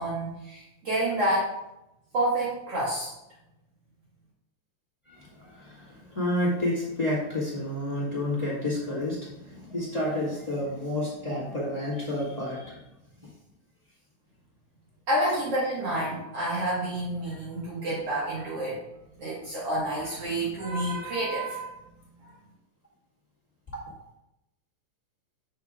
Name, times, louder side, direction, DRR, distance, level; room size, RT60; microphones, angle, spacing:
voice 1, 0.0-1.6 2.1-3.1 15.1-18.8 19.2-21.7 22.2-22.3, right 1 dB, 55° right, -7 dB, 2.4 m, -29 dB
voice 2, 5.1-12.8, left 1 dB, 15° left, -6 dB, 1.8 m, -30 dB
9.0 x 6.6 x 2.4 m, 0.88 s
omnidirectional pair, 3.4 m